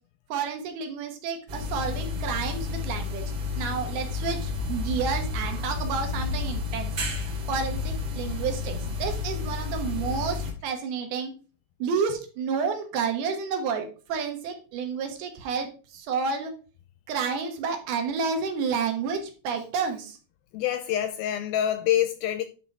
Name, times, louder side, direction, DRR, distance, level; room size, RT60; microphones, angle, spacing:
voice 1, 0.3-3.3 3.6-6.9 7.5-11.3 11.8-15.7 15.9-16.5 17.1-20.2, right 5 dB, 75° right, 3.2 m, -30 dB
sound 1, 1.5-10.5, left 4 dB, 45° right, 2.3 m, -31 dB
voice 2, 20.5-22.4, left 11 dB, 80° left, 2.2 m, -26 dB
10.5 x 4.0 x 4.7 m
omnidirectional pair, 4.7 m